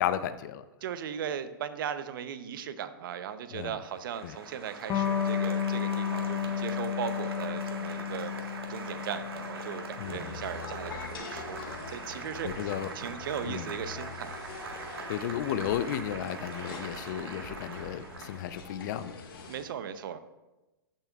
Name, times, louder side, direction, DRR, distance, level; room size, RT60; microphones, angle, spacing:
voice 1, 0.0-0.6 3.5-3.8 4.2-4.4 10.0-10.4 12.4-12.9 13.4-13.8 15.1-19.1, left 10 dB, 50° left, 13 dB, 0.5 m, -33 dB
voice 2, 0.8-8.3 8.7-14.3 19.5-20.2, right 8 dB, 60° right, 12 dB, 0.7 m, -38 dB
Applause, 3.8-18.6, right 3 dB, 80° right, 1.5 m, -42 dB
Electric guitar, 4.9-12.0, left 8 dB, 25° left, 1.0 m, -33 dB
sound 1, 10.0-19.6, left 5 dB, 70° left, 1.8 m, -45 dB
14.0 x 6.9 x 2.4 m, 1.1 s
hypercardioid pair, 120°, 12 cm